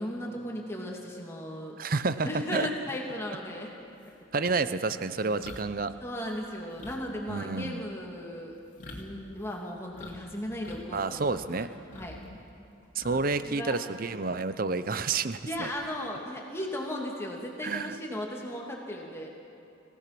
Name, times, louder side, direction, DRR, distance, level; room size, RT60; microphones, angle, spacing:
voice 1, 0.0-1.8 2.2-3.7 6.0-8.6 9.0-11.7 11.9-12.2 13.5-13.8 15.4-19.3, left 1 dB, 15° left, -1 dB, 2.6 m, -36 dB
voice 2, 1.8-2.7 4.3-5.9 7.3-7.8 10.9-11.7 13.0-15.7 17.6-18.0, right 4 dB, 50° right, 13 dB, 0.7 m, -29 dB
sound 1, 3.5-3.6 4.0-10.2 10.5-11.5 11.8-13.5 13.8-14.0 15.4-16.0, left 2 dB, 40° left, 2.8 m, -47 dB
28.0 x 16.5 x 6.1 m, 2.8 s
head